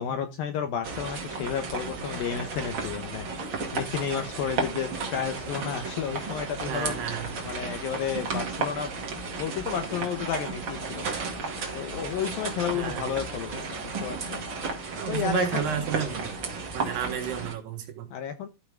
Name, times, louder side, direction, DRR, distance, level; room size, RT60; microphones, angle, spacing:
voice 1, 0.0-3.3 3.7-6.9 7.4-8.9 9.4-11.1 11.7-14.4 15.1-15.7 18.1-18.5, left 8 dB, 70° left, 2.4 m, -32 dB
sound 1, 0.8-17.5, right 4 dB, 35° right, 2.1 m, -34 dB
voice 2, 6.7-7.6 12.7-13.1 15.0-16.3 16.7-18.1, right 9 dB, 70° right, 3.7 m, -32 dB
14.0 x 6.0 x 3.5 m
omnidirectional pair, 5.1 m